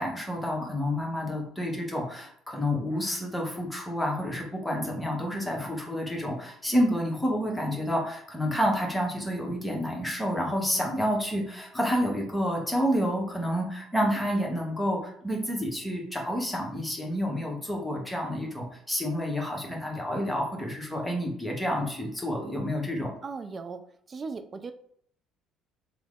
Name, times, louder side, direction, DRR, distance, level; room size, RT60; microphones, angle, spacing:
voice 1, 0.0-23.1, equal, 5° left, -1 dB, 1.0 m, -29 dB
voice 2, 23.2-23.8 24.1-24.7, right 4 dB, 35° right, 9 dB, 0.3 m, -37 dB
3.2 x 2.0 x 3.6 m, 0.65 s
figure-of-eight pair, 50°, 0 cm